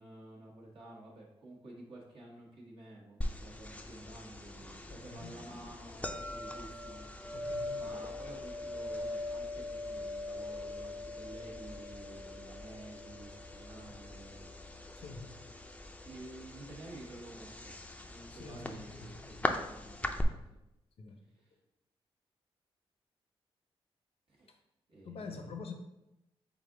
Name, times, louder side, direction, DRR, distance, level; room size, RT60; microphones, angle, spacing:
voice 1, 0.0-15.0 16.0-17.8 18.1-20.6 21.3-21.5 24.3-24.5 24.9-25.6, right 2 dB, 60° right, -4 dB, 1.1 m, -51 dB
sound 1, 3.2-20.2, left 2 dB, 15° left, 0.4 m, -41 dB
voice 2, 4.9-5.3 7.3-7.8 14.9-15.4 18.3-19.5 21.0-21.2 24.5-24.6 25.0-25.7, left 4 dB, 70° left, 5 dB, 0.7 m, -47 dB
4.0 x 3.7 x 3.7 m, 0.89 s
cardioid pair, 75°, 10 cm